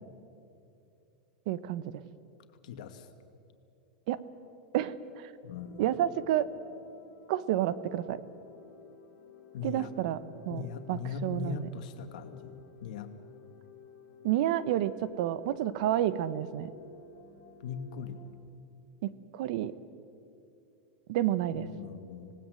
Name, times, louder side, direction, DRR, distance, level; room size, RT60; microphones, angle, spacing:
voice 1, 1.5-2.0 4.1-4.2 4.7-5.3 5.8-6.5 7.3-8.2 9.6-10.2 10.5-11.7 14.2-16.7 19.0-19.7 21.1-21.7, right 12 dB, 65° right, 15 dB, 1.1 m, -30 dB
voice 2, 2.6-3.0 5.4-5.8 9.5-9.9 10.5-12.5 12.8-13.1 17.6-18.2 21.6-22.3, left 6 dB, 70° left, 7 dB, 2.2 m, -39 dB
sound 1, 5.5-18.3, left 5 dB, 55° left, 4.6 m, -54 dB
26.5 x 19.0 x 7.9 m, 2.7 s
supercardioid pair, 140°, 4 cm